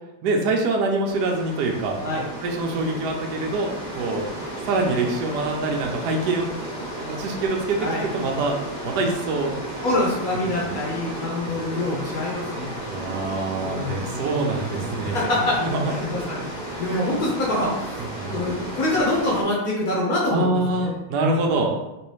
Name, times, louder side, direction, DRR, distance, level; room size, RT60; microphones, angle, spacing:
voice 1, 0.2-2.0 2.4-4.2 4.7-6.5 7.0-7.9 8.1-8.5 8.8-9.5 10.6-10.7 11.5-11.6 12.9-15.3 15.6-16.1 16.7-17.0 18.1-18.5 20.3-21.7, right 2 dB, 85° right, 1 dB, 0.8 m, -25 dB
sound 1, 1.1-19.4, right 1 dB, 40° right, 0.6 m, -33 dB
voice 2, 9.8-12.8 13.6-14.2 15.0-15.6 15.9-17.7 18.3-21.0, left 2 dB, 65° left, -4 dB, 0.9 m, -25 dB
3.2 x 3.0 x 3.1 m, 0.93 s
omnidirectional pair, 2.3 m